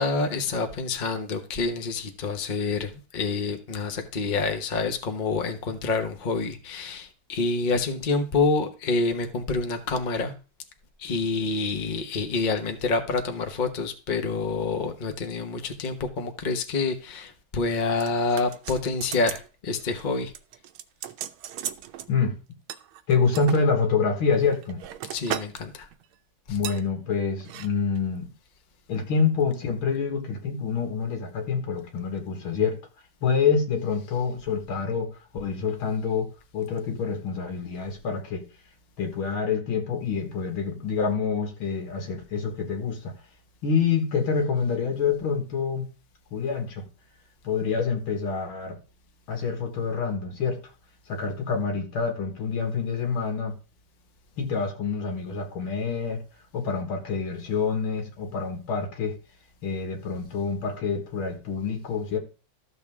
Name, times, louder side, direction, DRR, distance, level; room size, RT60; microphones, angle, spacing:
voice 1, 0.0-10.3 11.0-20.3 25.1-25.9 26.5-26.6, left 3 dB, 35° left, 0.8 m, -27 dB
sound 1, 18.0-19.5 19.8-20.1 20.3-22.1 22.7-23.6 24.3-25.6 25.9-26.1 26.6-26.8 27.4-27.7 28.0-28.1, right 11 dB, 90° right, 1.5 m, -36 dB
voice 2, 23.1-24.8 26.5-28.3 28.9-32.8 33.2-38.5 39.0-43.1 43.6-45.9 46.3-46.9 47.4-48.8 49.3-50.7 51.1-53.5 54.4-56.2 56.5-59.2 59.6-62.2, left 5 dB, 90° left, 2.5 m, -27 dB
13.0 x 6.9 x 3.6 m
omnidirectional pair, 2.2 m